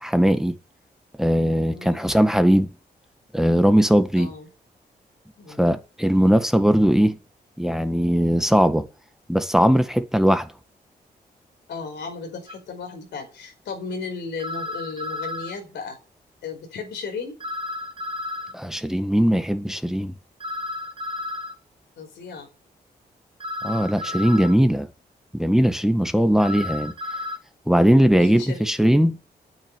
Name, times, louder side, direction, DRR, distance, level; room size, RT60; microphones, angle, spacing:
voice 1, 0.0-0.5 1.2-2.7 3.3-4.3 5.6-7.2 7.6-8.8 9.3-10.5 18.5-20.1 23.6-24.9 25.3-26.9 27.7-29.1, equal, 5° right, 1.7 m, -19 dB
voice 2, 1.7-2.0 4.1-4.5 5.4-5.7 11.7-16.0 16.4-17.4 22.0-22.5 28.2-28.7, left 4 dB, 85° left, 4.9 m, -35 dB
sound 1, 12.5-12.6 14.4-15.5 17.4-18.5 20.4-21.5 23.4-24.5 26.4-27.4, left 2 dB, 30° right, 2.4 m, -32 dB
9.3 x 8.7 x 9.0 m
supercardioid pair, 50°, 18 cm